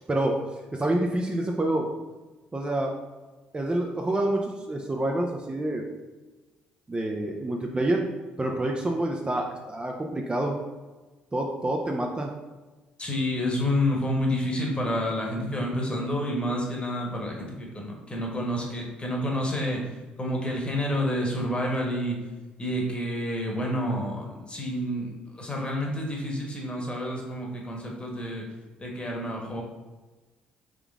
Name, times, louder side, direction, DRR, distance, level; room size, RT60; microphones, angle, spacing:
voice 1, 0.1-0.4 0.7-1.9 2.5-2.9 3.5-5.8 6.9-8.0 8.4-10.6 11.3-12.3, right 1 dB, 25° right, 1 dB, 0.6 m, -27 dB
voice 2, 13.0-19.8 20.2-22.2 22.6-28.4 28.8-29.6, left 1 dB, 25° left, -1 dB, 1.3 m, -29 dB
3.7 x 3.4 x 3.6 m, 1.2 s
hypercardioid pair, 50°, 4 cm